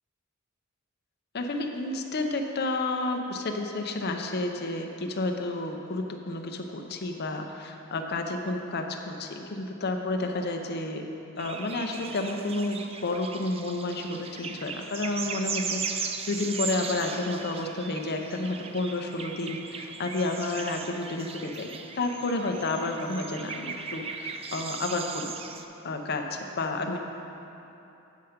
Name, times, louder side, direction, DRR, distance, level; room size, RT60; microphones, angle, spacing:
voice 1, 1.3-11.0 11.4-25.3 25.8-27.0, left 2 dB, 50° left, 4 dB, 0.6 m, -31 dB
sound 1, 11.4-25.6, right 5 dB, 25° right, 0.3 m, -38 dB
8.2 x 5.7 x 5.0 m, 3.0 s
head